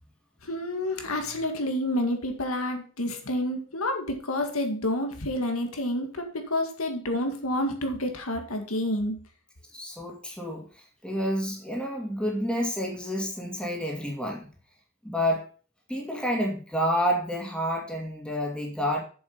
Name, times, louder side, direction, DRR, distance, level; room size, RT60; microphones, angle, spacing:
voice 1, 0.4-9.2, left 1 dB, 75° left, 4 dB, 2.0 m, -29 dB
voice 2, 9.7-10.6 11.0-14.5 15.0-15.4 15.9-19.0, equal, 5° left, 0 dB, 2.4 m, -29 dB
7.7 x 7.2 x 5.5 m, 0.40 s
head